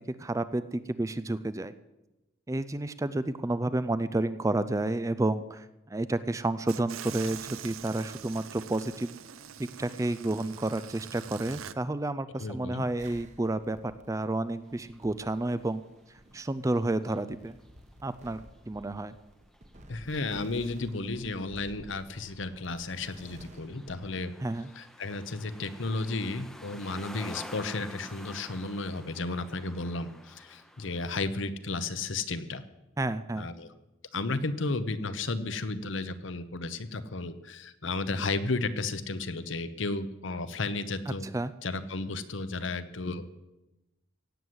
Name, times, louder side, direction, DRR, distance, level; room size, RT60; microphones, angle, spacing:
voice 1, 0.1-1.7 2.5-9.1 9.6-15.8 16.3-17.6 18.0-18.4 18.7-19.1 24.4-24.7 33.0-33.5 41.2-41.5, right 2 dB, 15° right, 14 dB, 0.4 m, -30 dB
sound 1, 6.7-11.7, right 8 dB, 85° right, 0.7 m, -44 dB
voice 2, 12.4-12.9 19.9-24.3 24.8-32.6 33.4-33.7 34.1-41.3 41.6-43.3, left 3 dB, 65° left, 12 dB, 0.9 m, -33 dB
sound 2, 13.0-24.2, right 1 dB, 35° right, 1.2 m, -53 dB
sound 3, 14.6-15.0 15.3-16.0 16.3-31.3, equal, ahead, 0.8 m, -50 dB
17.0 x 8.0 x 7.9 m, 1.0 s
head